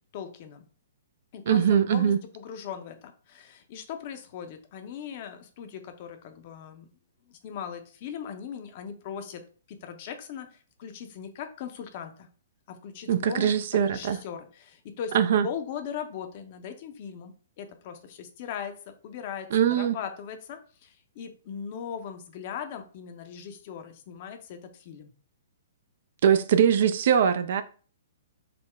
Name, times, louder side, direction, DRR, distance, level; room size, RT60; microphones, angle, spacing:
voice 1, 0.1-0.7 1.3-6.9 7.2-9.4 9.7-12.3 12.7-13.5 13.8-15.2 15.4-25.1, left 8 dB, 45° left, 0.6 m, -39 dB
voice 2, 1.5-2.2 13.1-14.2 15.1-15.5 19.5-20.0 26.2-27.6, right 8 dB, 50° right, 0.3 m, -22 dB
3.7 x 2.1 x 3.3 m
figure-of-eight pair, 120°, 0 cm